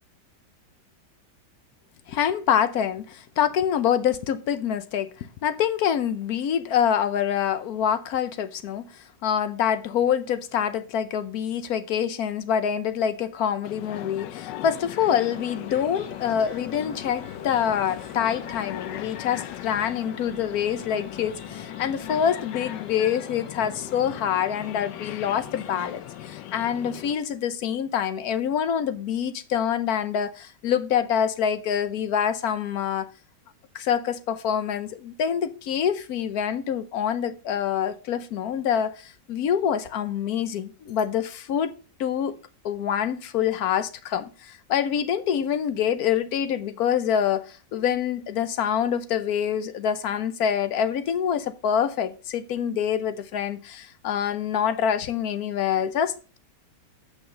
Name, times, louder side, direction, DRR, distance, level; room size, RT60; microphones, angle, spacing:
voice 1, 2.1-8.9 9.2-33.1 33.7-41.7 42.0-42.4 42.6-56.4, left 8 dB, 65° left, 1.2 m, -26 dB
sound 1, 13.6-27.2, left 13 dB, 90° left, 1.3 m, -38 dB
sound 2, 14.7-26.9, left 4 dB, 25° left, 0.7 m, -46 dB
8.3 x 5.9 x 5.3 m
omnidirectional pair, 1.8 m